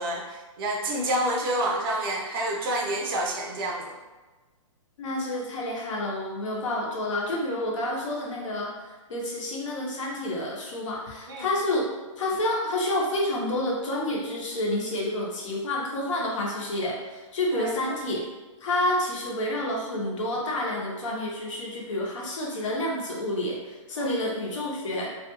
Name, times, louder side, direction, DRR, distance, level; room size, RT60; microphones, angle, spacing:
voice 1, 0.0-3.9 11.3-11.5 17.5-17.7 24.0-24.1, right 1 dB, 40° right, -1 dB, 0.5 m, -28 dB
voice 2, 5.0-11.9 12.2-18.2 18.6-25.1, left 1 dB, 65° left, -2 dB, 0.8 m, -29 dB
2.4 x 2.2 x 2.9 m, 1.2 s
hypercardioid pair, 140°, 17 cm